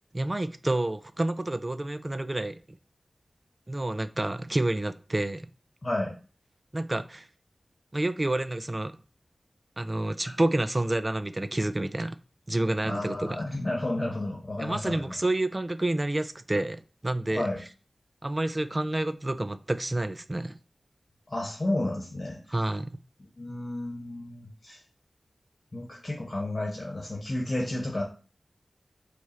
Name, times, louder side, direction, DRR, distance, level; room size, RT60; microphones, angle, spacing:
voice 1, 0.1-2.6 3.7-5.4 6.7-7.3 7.9-8.9 9.8-12.2 12.5-13.4 14.6-17.5 18.2-20.6 22.5-22.9, right 1 dB, 30° right, 0.4 m, -29 dB
voice 2, 5.8-6.2 10.2-10.3 12.8-15.2 17.3-17.6 21.3-22.6 23.4-24.8 25.7-28.0, left 1 dB, 45° left, 1.3 m, -32 dB
4.7 x 2.4 x 4.2 m
wide cardioid pair, 50°, 0 cm